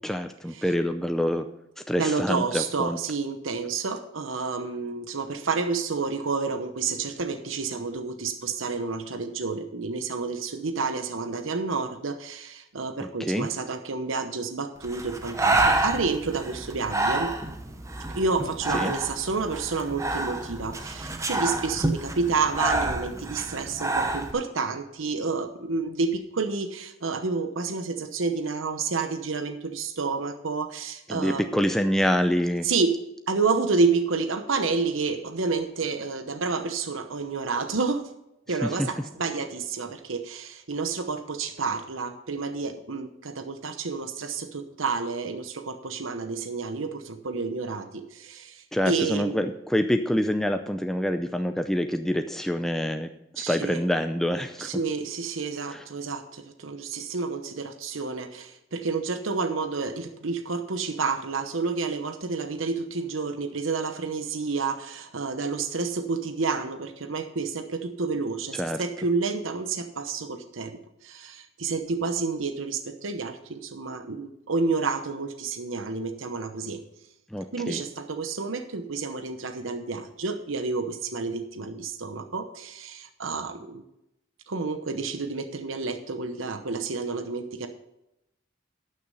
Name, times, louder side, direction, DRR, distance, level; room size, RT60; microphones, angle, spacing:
voice 1, 0.0-1.5 1.9-3.0 13.0-13.5 18.7-18.9 31.1-32.7 38.6-38.9 48.7-54.7 55.7-55.8 68.5-68.8 77.3-77.8, equal, ahead, 6 dB, 0.5 m, -26 dB
voice 2, 2.0-17.3 18.1-31.6 32.6-32.9 33.3-38.1 38.5-49.5 53.4-53.8 54.6-76.8 77.5-83.8 84.5-87.7, right 4 dB, 90° right, 7 dB, 0.9 m, -29 dB
Breathing, 14.8-24.3, right 2 dB, 15° right, 0.8 m, -28 dB
12.0 x 6.6 x 5.5 m, 0.87 s
head